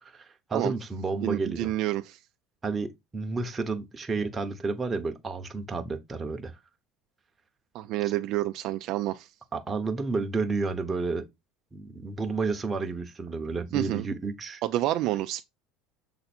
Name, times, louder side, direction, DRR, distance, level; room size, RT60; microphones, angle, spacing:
voice 1, 0.0-1.7 2.6-6.5 9.5-11.3 11.7-14.6, right 4 dB, 15° right, 1.1 m, -31 dB
voice 2, 1.2-2.2 7.7-9.3 13.7-14.1 14.6-15.4, right 15 dB, 55° right, 0.5 m, -28 dB
6.9 x 4.0 x 4.4 m
cardioid pair, 150°, 0 cm